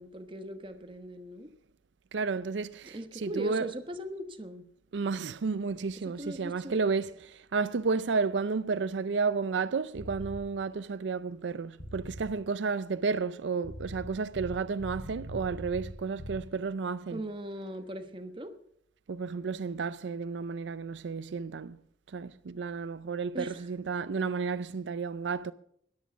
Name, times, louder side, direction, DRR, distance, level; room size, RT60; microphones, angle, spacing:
voice 1, 0.0-1.5 2.9-4.6 6.0-6.8 17.1-18.5 23.3-23.7, equal, 30° right, 1.2 m, -40 dB
voice 2, 2.1-3.7 4.9-17.2 19.1-21.8 22.1-25.5, right 4 dB, 85° right, 0.5 m, -32 dB
sound 1, 9.9-10.4 11.8-12.3 13.6-16.4, equal, 90° left, 3.3 m, -41 dB
13.0 x 10.5 x 7.0 m
head